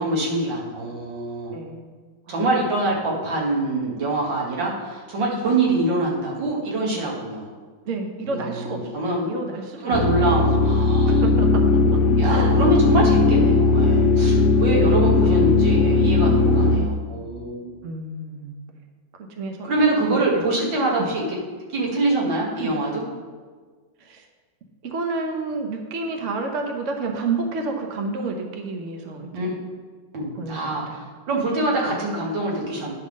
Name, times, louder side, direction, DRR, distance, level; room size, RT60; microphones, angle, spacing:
voice 1, 0.0-1.5 2.3-7.5 8.2-9.3 9.8-11.2 12.2-17.7 19.6-21.4 21.7-23.0 29.3-29.6 30.1-30.9 31.3-32.9, right 2 dB, 75° right, -3 dB, 2.3 m, -24 dB
voice 2, 1.5-1.9 2.3-2.5 7.8-8.9 9.2-10.3 11.0-12.0 12.3-12.6 14.7-15.1 16.6-17.0 17.8-18.5 19.3-20.4 21.0-21.1 22.6-22.7 24.0-24.3 24.8-29.6 30.3-31.1 31.9-32.0, right 3 dB, 55° right, 3 dB, 0.9 m, -30 dB
sound 1, 9.9-16.8, left 3 dB, 65° left, 0.9 m, -18 dB
10.0 x 3.6 x 6.4 m, 1.5 s
omnidirectional pair, 2.0 m